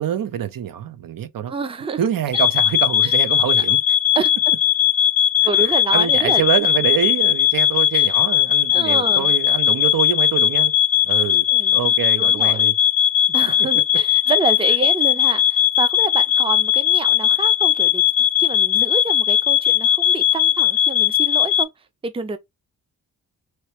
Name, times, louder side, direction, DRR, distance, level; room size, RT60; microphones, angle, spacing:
voice 1, 0.0-1.5 2.0-3.8 5.4-10.7 11.0-11.4 11.7-12.7, right 9 dB, 70° right, 0.6 m, -25 dB
voice 2, 1.5-2.0 3.0-3.1 3.6-3.7 4.1-4.3 5.4-6.4 7.9-8.1 8.7-9.3 11.3-11.8 12.2-12.7 13.3-18.0 18.4-21.7 22.0-22.4, right 5 dB, 15° right, 0.5 m, -27 dB
sound 1, 2.3-21.6, left 11 dB, 75° left, 0.6 m, -18 dB
3.2 x 3.0 x 2.9 m
wide cardioid pair, 125°, 35 cm